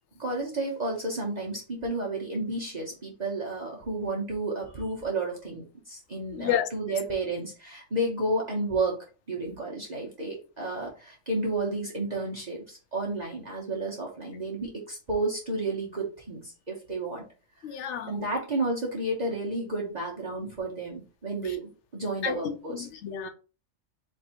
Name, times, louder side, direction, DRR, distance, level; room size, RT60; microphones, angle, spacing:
voice 1, 0.2-9.0 9.3-17.2 17.7-17.8 18.1-22.9, right 2 dB, 35° right, 1.0 m, -31 dB
voice 2, 6.3-7.0 17.6-18.2 22.2-23.3, left 9 dB, 65° left, 1.0 m, -31 dB
4.1 x 2.6 x 4.4 m
omnidirectional pair, 1.3 m